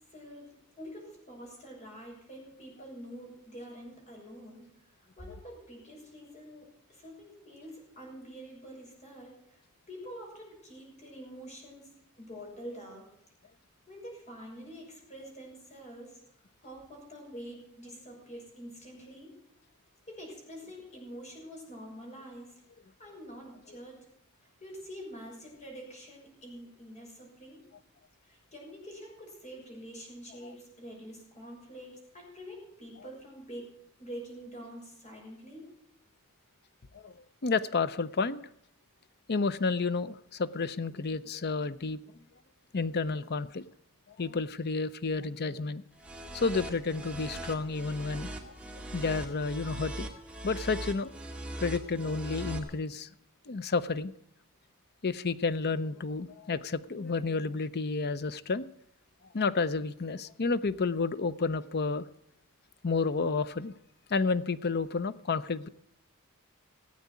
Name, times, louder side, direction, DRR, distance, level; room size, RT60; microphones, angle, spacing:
voice 1, 0.1-4.7 5.2-9.6 9.9-11.9 12.2-13.1 13.9-16.2 16.6-19.3 20.1-22.6 23.0-24.0 24.4-27.6 28.2-33.7 34.0-35.7, equal, 30° left, -1 dB, 6.5 m, -46 dB
voice 2, 37.4-38.4 39.3-42.0 42.7-43.6 44.1-45.8 46.3-50.1 50.4-51.1 51.6-53.1 53.5-54.1 55.0-58.7 59.3-62.1 62.8-63.7 64.1-65.7, left 4 dB, 50° left, 14 dB, 0.6 m, -31 dB
sound 1, 46.0-52.6, right 1 dB, 5° right, 2.1 m, -40 dB
17.0 x 8.6 x 8.2 m, 0.78 s
head